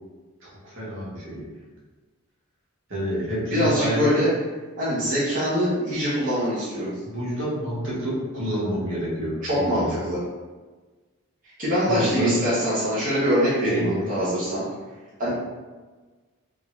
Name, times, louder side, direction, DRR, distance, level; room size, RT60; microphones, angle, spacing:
voice 1, 0.4-1.4 2.9-4.2 7.0-9.8 11.9-12.4 13.6-14.0 15.2-15.3, equal, 65° right, -8 dB, 1.3 m, -28 dB
voice 2, 3.5-4.3 4.8-6.9 9.4-10.2 11.6-14.7 15.2-15.3, equal, 40° right, -11 dB, 0.8 m, -23 dB
3.6 x 2.3 x 3.1 m, 1.3 s
head